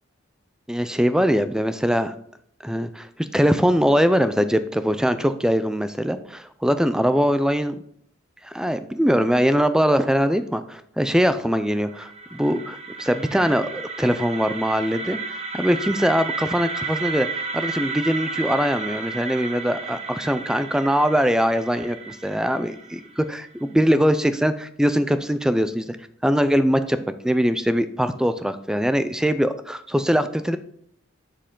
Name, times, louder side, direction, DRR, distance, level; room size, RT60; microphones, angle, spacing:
voice 1, 0.7-2.1 2.6-7.8 8.4-15.2 15.5-17.3 17.5-26.0 26.2-27.0 27.2-30.6, equal, 5° right, 11 dB, 0.4 m, -22 dB
sound 1, 11.6-23.6, right 4 dB, 30° right, 0.8 m, -33 dB
7.4 x 6.6 x 3.8 m, 0.65 s
head